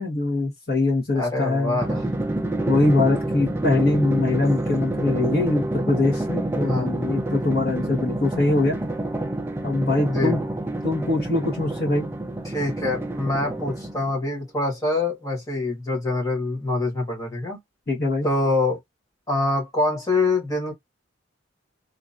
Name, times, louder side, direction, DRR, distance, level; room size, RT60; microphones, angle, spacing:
voice 1, 0.0-1.8 2.7-8.8 9.6-10.4 10.8-12.1 17.9-18.3, left 2 dB, 50° left, 1.2 m, -22 dB
voice 2, 1.1-2.0 6.6-6.9 10.0-10.4 12.4-17.6 18.2-18.8 19.3-20.7, left 2 dB, 15° left, 1.4 m, -25 dB
Drum, 1.8-14.2, right 1 dB, 10° right, 0.3 m, -28 dB
2.9 x 2.4 x 2.6 m
head